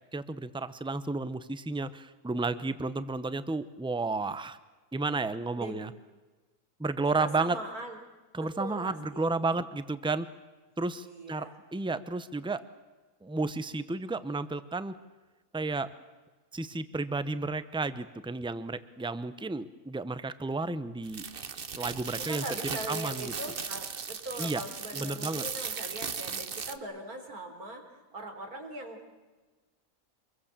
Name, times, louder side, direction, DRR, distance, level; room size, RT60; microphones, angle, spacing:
voice 1, 0.1-4.6 4.9-5.9 6.8-7.6 8.3-10.3 10.8-12.6 13.2-15.0 15.5-15.9 16.5-21.2 21.8-22.4 22.9-23.3 24.4-24.6 24.9-25.4, right 3 dB, 5° right, 13 dB, 0.6 m, -32 dB
voice 2, 7.2-8.0 8.4-9.3 11.0-11.6 22.3-27.8 28.1-29.1, right 1 dB, 75° right, 5 dB, 4.3 m, -41 dB
sound 1, 21.0-26.8, right 6 dB, 40° right, 1.1 m, -37 dB
26.5 x 22.0 x 7.5 m, 1.3 s
omnidirectional pair, 1.6 m